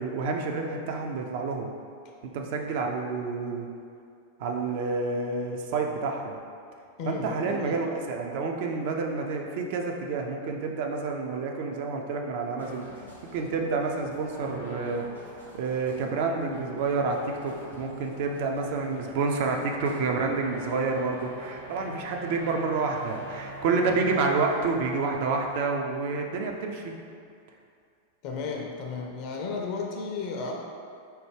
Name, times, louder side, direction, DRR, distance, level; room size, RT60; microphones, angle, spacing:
voice 1, 0.0-1.7 2.2-3.7 4.4-6.4 7.0-13.0 13.3-15.0 15.5-26.9, right 4 dB, 50° right, 2 dB, 0.4 m, -29 dB
voice 2, 7.0-7.8 28.2-30.5, left 4 dB, 45° left, 0 dB, 0.4 m, -33 dB
sound 1, 12.6-25.6, right 2 dB, 85° right, 0.7 m, -44 dB
4.3 x 2.2 x 3.2 m, 2.4 s
figure-of-eight pair, 90°, 0 cm